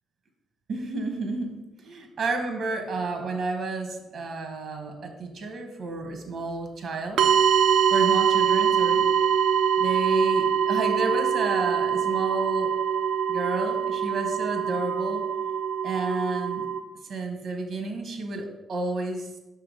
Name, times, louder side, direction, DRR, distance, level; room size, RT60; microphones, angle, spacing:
voice 1, 0.7-7.2 7.9-9.1 9.8-12.7 13.3-15.2 15.8-16.7 17.1-19.3, right 2 dB, 60° right, 5 dB, 1.0 m, -31 dB
sound 1, 7.2-16.8, right 7 dB, 85° right, 0.4 m, -23 dB
5.7 x 3.5 x 4.8 m, 1.0 s
cardioid pair, 90°, 0 cm